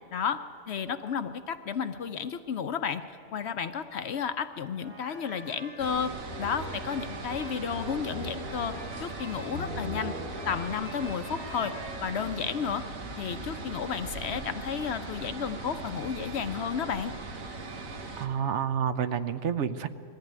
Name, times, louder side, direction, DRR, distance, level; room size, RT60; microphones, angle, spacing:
voice 1, 0.7-3.0 3.3-8.7 9.0-10.1 10.5-11.7 12.0-12.9 13.2-17.1, left 7 dB, 60° left, 10 dB, 0.8 m, -32 dB
sound 1, 4.8-12.6, equal, 45° right, 3.1 m, -42 dB
sound 2, 5.8-18.3, right 3 dB, 80° right, 1.8 m, -40 dB
voice 2, 18.2-19.9, right 8 dB, 65° right, 11 dB, 0.9 m, -29 dB
20.0 x 14.5 x 9.4 m, 2.8 s
omnidirectional pair, 1.4 m